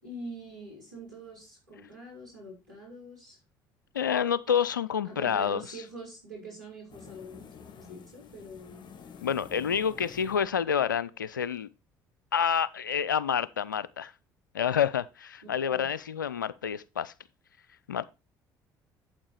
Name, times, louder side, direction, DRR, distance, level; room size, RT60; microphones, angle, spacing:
voice 1, 0.0-3.4 5.0-8.9 15.6-15.9, right 1 dB, 90° right, 4.6 m, -45 dB
voice 2, 3.9-5.8 9.2-11.7 12.3-14.1 14.5-17.1 17.9-18.0, left 8 dB, 90° left, 0.4 m, -28 dB
sound 1, 6.9-11.5, left 6 dB, 50° left, 1.6 m, -50 dB
8.7 x 7.7 x 3.3 m
hypercardioid pair, 55°, 10 cm